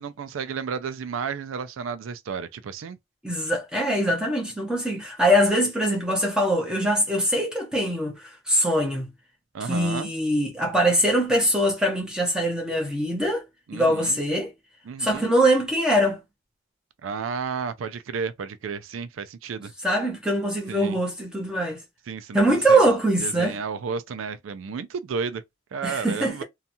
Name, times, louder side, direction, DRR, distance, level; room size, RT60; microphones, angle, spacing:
voice 1, 0.0-3.0 9.5-10.1 13.7-14.2 14.9-15.3 17.0-19.7 20.7-21.0 22.1-22.8 23.2-25.4 25.7-26.4, right 6 dB, 80° right, 0.4 m, -32 dB
voice 2, 3.2-9.1 9.7-13.4 13.7-14.5 15.0-16.2 19.8-21.8 22.3-23.6 25.8-26.4, right 1 dB, 5° right, 0.8 m, -23 dB
2.7 x 2.3 x 2.5 m
head